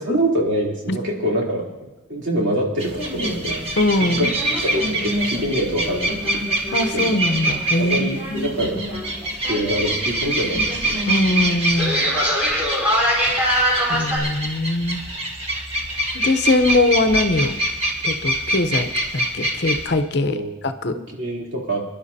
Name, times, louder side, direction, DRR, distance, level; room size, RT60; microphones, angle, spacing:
voice 1, 0.0-1.7 2.1-3.7 4.1-4.3 4.6-6.5 6.9-7.1 7.8-8.8 9.4-11.0 20.2-20.5 20.9-21.8, right 1 dB, 65° right, -3 dB, 3.3 m, -25 dB
sound 1, 2.8-14.2, equal, 10° right, 4.2 m, -25 dB
sound 2, 2.8-19.9, right 1 dB, 30° right, 1.6 m, -25 dB
voice 2, 3.8-4.3 6.7-8.6 11.1-12.1 13.9-15.0 16.1-17.5 18.0-18.9 19.1-20.4 20.6-20.9, left 2 dB, 55° left, 9 dB, 0.8 m, -21 dB
26.0 x 11.5 x 2.8 m, 1.1 s
head